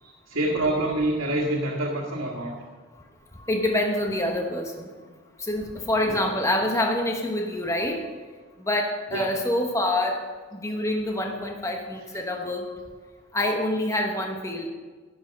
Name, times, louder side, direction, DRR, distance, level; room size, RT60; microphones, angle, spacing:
voice 1, 0.0-2.5 6.1-6.2 9.1-9.3, right 1 dB, 85° right, -4 dB, 1.9 m, -27 dB
voice 2, 3.5-4.9 5.4-8.0 8.7-10.3 10.5-12.7 13.3-14.7, left 1 dB, 15° left, 2 dB, 1.1 m, -26 dB
12.0 x 11.0 x 5.3 m, 1.4 s
head